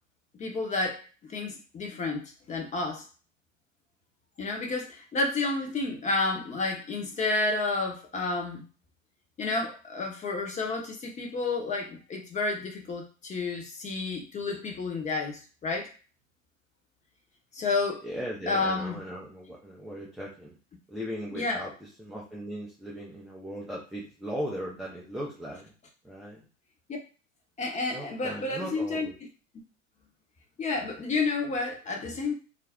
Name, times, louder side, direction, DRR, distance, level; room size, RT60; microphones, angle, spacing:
voice 1, 0.4-3.0 4.4-8.7 9.4-15.9 17.5-18.0 18.5-19.0 21.3-21.6 27.6-29.1 30.6-32.3, left 3 dB, 20° left, 1 dB, 0.7 m, -30 dB
voice 2, 18.0-20.6 20.9-25.7 26.0-26.4 27.9-29.1, equal, ahead, -5 dB, 0.3 m, -38 dB
2.5 x 2.1 x 3.4 m, 0.36 s
hypercardioid pair, 95°, 39 cm